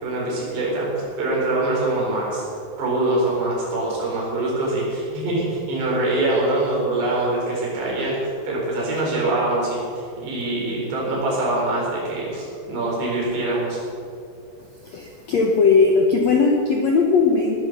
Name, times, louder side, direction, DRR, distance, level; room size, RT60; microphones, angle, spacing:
voice 1, 0.0-2.4 2.8-13.8, right 2 dB, 90° right, -4 dB, 6.7 m, -24 dB
voice 2, 14.8-17.6, left 4 dB, 75° left, 1 dB, 1.5 m, -18 dB
18.5 x 10.0 x 6.7 m, 2.5 s
omnidirectional pair, 4.8 m